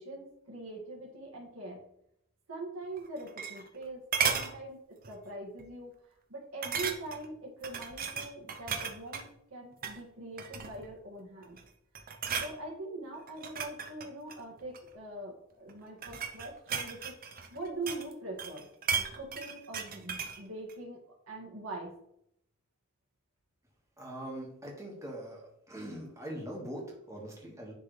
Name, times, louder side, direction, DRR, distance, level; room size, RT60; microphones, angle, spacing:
voice 1, 0.0-1.8 2.5-4.0 4.3-4.8 5.1-5.9 6.3-11.6 12.4-17.1 17.5-21.0 21.3-21.9, right 2 dB, 80° right, -2 dB, 2.0 m, -42 dB
sound 1, 3.0-3.8 4.1-4.5 5.0-5.3 5.6-5.7 6.6-7.3 7.6-9.3 9.7-10.0 10.4-10.9 11.4-11.7 11.9-12.5 13.3-14.9 15.7-18.1 18.4-20.4 20.7-20.8, right 6 dB, 45° right, 0.8 m, -35 dB
voice 2, 24.0-25.4 25.7-27.7, right 1 dB, 15° right, -2 dB, 1.8 m, -42 dB
10.0 x 3.9 x 3.3 m, 0.73 s
head